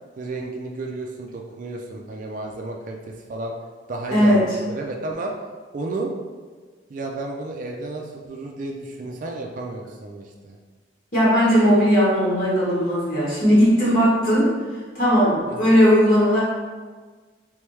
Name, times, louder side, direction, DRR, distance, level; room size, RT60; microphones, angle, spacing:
voice 1, 0.2-3.5 3.9-5.3 5.7-6.1 6.9-10.6 15.5-15.8, right 2 dB, 45° right, 1 dB, 0.4 m, -32 dB
voice 2, 11.1-14.5 14.9-16.4, equal, 50° left, -8 dB, 1.4 m, -17 dB
3.4 x 3.3 x 3.2 m, 1.4 s
head